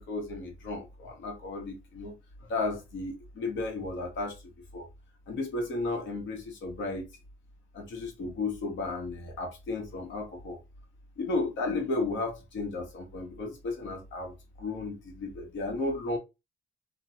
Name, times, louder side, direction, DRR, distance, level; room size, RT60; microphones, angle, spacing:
voice 1, 0.0-2.1 2.5-4.4 4.7-4.9 5.3-7.1 7.7-10.6 11.2-16.2, left 3 dB, 70° left, 1.0 m, -34 dB
2.8 x 2.1 x 2.8 m
cardioid pair, 90°, 20 cm